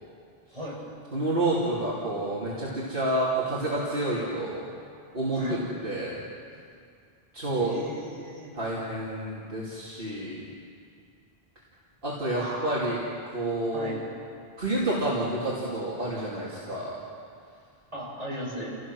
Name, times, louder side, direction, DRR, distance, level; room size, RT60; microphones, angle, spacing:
voice 1, 1.1-4.7 5.1-5.6 5.8-6.2 7.3-7.7 8.5-10.4 12.0-13.0 13.3-14.0 14.6-16.9, right 1 dB, 60° right, -7 dB, 3.2 m, -29 dB
voice 2, 5.3-5.7 7.6-8.6 12.3-12.8 13.7-14.0 17.9-18.7, equal, 35° right, -6 dB, 8.0 m, -36 dB
29.5 x 18.0 x 6.3 m, 2.4 s
omnidirectional pair, 1.0 m